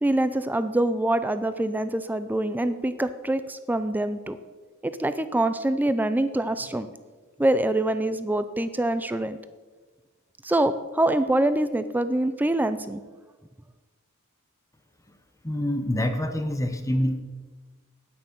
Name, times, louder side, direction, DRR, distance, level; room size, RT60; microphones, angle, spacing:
voice 1, 0.0-4.4 4.8-6.9 7.4-9.4 10.4-13.0, right 1 dB, 10° right, 12 dB, 0.4 m, -25 dB
voice 2, 15.4-17.2, left 1 dB, 15° left, 7 dB, 0.8 m, -26 dB
9.1 x 9.1 x 6.7 m, 1.3 s
head